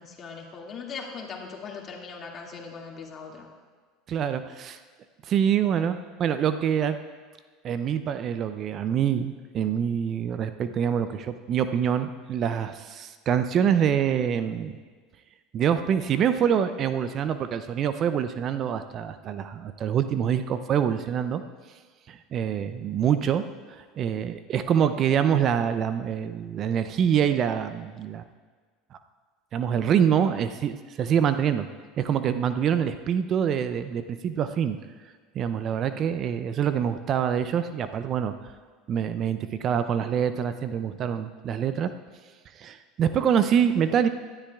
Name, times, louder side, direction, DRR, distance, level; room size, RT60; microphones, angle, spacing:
voice 1, 0.0-3.5, left 5 dB, 40° left, 0 dB, 2.2 m, -39 dB
voice 2, 4.1-4.8 5.2-7.0 7.6-14.7 15.5-21.4 22.1-28.2 29.5-31.7 32.0-34.8 35.3-38.3 38.9-41.9 42.6-44.1, right 8 dB, 45° right, 11 dB, 0.5 m, -25 dB
18.0 x 12.0 x 2.4 m, 1.5 s
hypercardioid pair, 80°, 0 cm